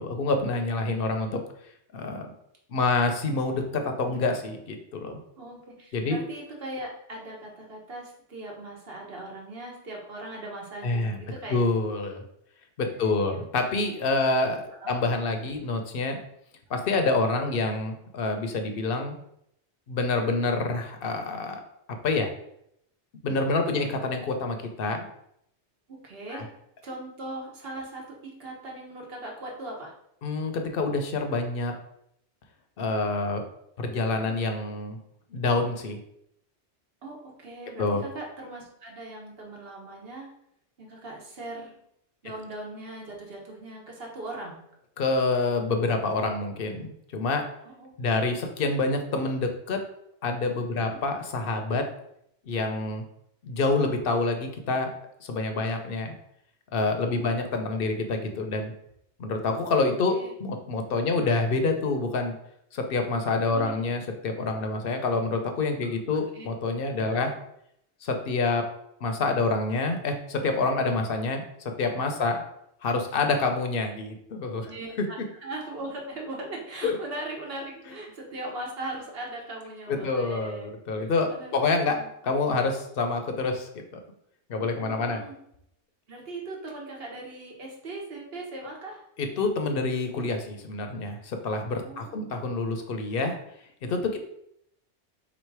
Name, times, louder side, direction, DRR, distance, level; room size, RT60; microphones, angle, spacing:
voice 1, 0.0-1.4 1.9-2.3 2.7-5.2 5.9-6.2 10.8-11.2 11.5-12.2 12.8-16.2 16.7-19.1 19.9-21.6 22.0-22.3 23.2-25.1 26.3-26.4 30.2-31.7 32.8-33.4 33.8-35.0 35.3-36.0 37.8-38.0 45.0-47.4 48.0-49.8 50.2-51.8 52.5-53.0 53.4-54.9 55.2-56.2 56.7-58.7 59.2-62.3 62.7-67.3 68.0-68.7 69.0-72.4 72.8-74.7 76.8-77.0 79.9-82.0 82.2-84.0 84.5-85.2 89.2-93.4 93.8-94.0, left 3 dB, 60° left, 5 dB, 0.8 m, -27 dB
voice 2, 5.4-11.6 12.8-13.5 14.2-14.3 14.8-14.9 23.7-23.8 25.9-26.5 26.8-29.9 37.0-40.3 40.8-41.7 42.2-44.6 47.6-47.9 50.7-51.0 57.1-57.3 60.1-60.3 61.0-61.3 63.5-63.9 66.3-66.5 67.1-67.3 74.6-75.2 75.4-80.7 81.0-82.1 84.6-85.3 86.1-89.0 91.8-92.3, right 2 dB, 60° right, -1 dB, 1.3 m, -39 dB
3.6 x 3.2 x 4.6 m, 0.74 s
omnidirectional pair, 1.2 m